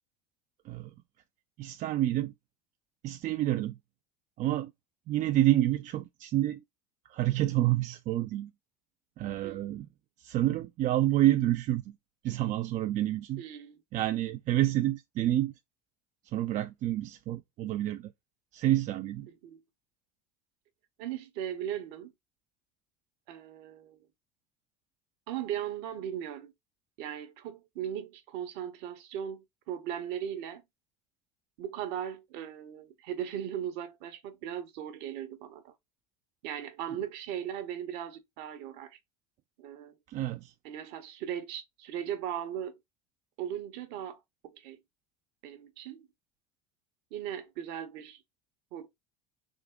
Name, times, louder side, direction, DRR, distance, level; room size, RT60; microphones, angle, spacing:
voice 1, 1.6-2.3 3.0-3.8 4.4-4.7 5.1-6.6 7.1-8.5 9.2-9.9 10.2-12.0 12.2-13.4 13.9-15.5 16.2-18.1 18.5-19.3 40.1-40.5, right 14 dB, 45° right, 0.4 m, -28 dB
voice 2, 13.4-13.8 19.3-19.6 21.0-22.1 23.3-24.1 25.3-26.5 27.0-30.6 31.6-35.7 36.4-39.0 39.6-40.0 40.6-42.8 43.4-44.8 45.4-46.1 47.1-48.2 48.7-48.9, right 10 dB, 65° right, 0.9 m, -38 dB
3.6 x 2.7 x 3.6 m
hypercardioid pair, 75°, 18 cm